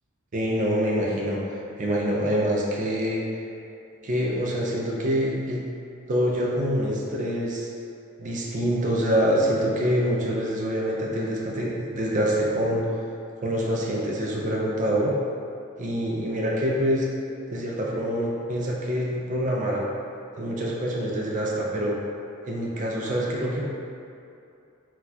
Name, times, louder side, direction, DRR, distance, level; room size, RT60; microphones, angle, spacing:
voice 1, 0.3-1.4 1.8-3.2 4.0-5.6 6.1-7.7 8.2-12.8 13.4-15.1 15.8-17.1 17.5-19.8 20.4-22.0 22.5-23.6, equal, 35° right, -3 dB, 0.4 m, -25 dB
4.0 x 2.3 x 2.7 m, 2.6 s
head